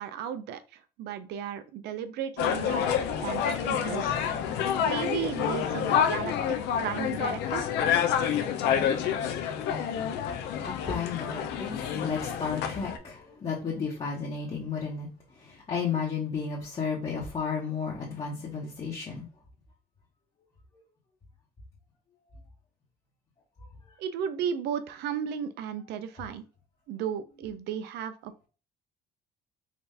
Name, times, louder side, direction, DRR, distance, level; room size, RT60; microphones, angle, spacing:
voice 1, 0.0-2.8 3.2-4.2 4.8-7.6 24.0-26.4 26.9-28.5, right 8 dB, 80° right, 12 dB, 0.5 m, -34 dB
sound 1, 2.4-13.0, left 8 dB, 85° left, 0.6 m, -28 dB
voice 2, 10.6-15.1 15.4-19.3, left 5 dB, 35° left, -4 dB, 1.2 m, -33 dB
4.1 x 2.6 x 3.3 m, 0.34 s
cardioid pair, 110°, 17 cm